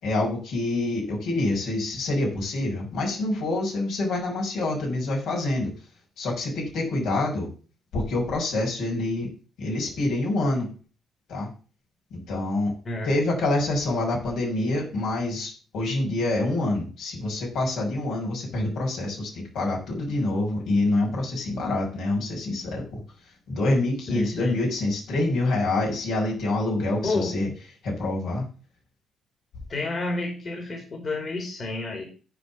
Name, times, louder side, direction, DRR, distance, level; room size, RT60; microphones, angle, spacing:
voice 1, 0.0-5.7 6.2-7.5 7.9-9.3 9.6-10.7 11.3-11.5 12.3-12.7 13.0-23.0 23.5-27.5 27.8-28.4, left 2 dB, 80° left, -2 dB, 6.3 m, -26 dB
voice 2, 12.8-13.2 24.1-24.6 27.0-27.3 29.7-32.0, left 2 dB, 40° left, 2 dB, 3.2 m, -30 dB
10.0 x 5.0 x 7.5 m, 0.37 s
cardioid pair, 90°, 0 cm